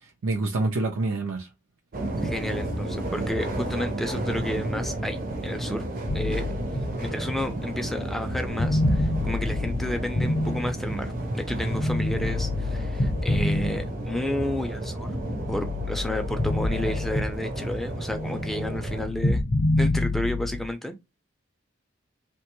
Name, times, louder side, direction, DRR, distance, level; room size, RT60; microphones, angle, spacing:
voice 1, 0.0-1.5, right 2 dB, 85° right, 0.5 m, -27 dB
sound 1, 1.9-19.1, right 1 dB, 45° right, 0.6 m, -32 dB
voice 2, 2.2-5.8 6.1-6.6 7.0-15.1 15.5-19.5 19.8-21.0, left 1 dB, ahead, 0.3 m, -31 dB
sound 2, 6.1-11.2 11.7-14.4 14.8-17.7 18.0-20.6, left 2 dB, 55° left, 0.6 m, -28 dB
2.8 x 2.2 x 3.0 m
head